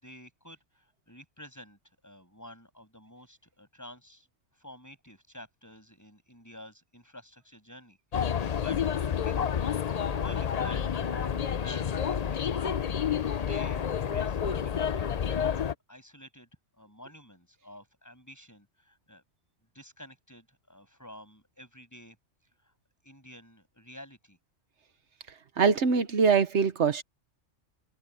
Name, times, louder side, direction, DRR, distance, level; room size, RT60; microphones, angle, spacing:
voice 1, 0.0-4.3 4.5-9.6 10.2-15.5 15.9-16.5 16.8-19.2 19.7-22.2 22.6-22.7 23.0-24.4, equal, 15° left, 7.0 m, -50 dB
sound 1, 8.1-15.7, left 8 dB, 45° left, 0.6 m, -29 dB
voice 2, 25.6-27.0, right 5 dB, 75° right, 1.3 m, -23 dB
omnidirectional pair, 1.2 m